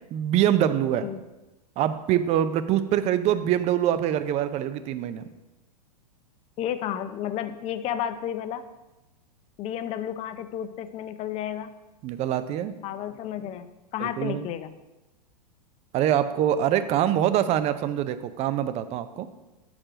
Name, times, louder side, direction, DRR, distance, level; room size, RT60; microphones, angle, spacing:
voice 1, 0.1-1.1 1.8-5.2 12.0-12.7 14.0-14.5 15.9-19.3, right 11 dB, 30° right, 12 dB, 0.5 m, -24 dB
voice 2, 6.6-8.6 9.6-11.7 12.8-14.7, left 10 dB, 30° left, 11 dB, 0.5 m, -32 dB
7.3 x 4.8 x 5.0 m, 1.1 s
hypercardioid pair, 110°, 21 cm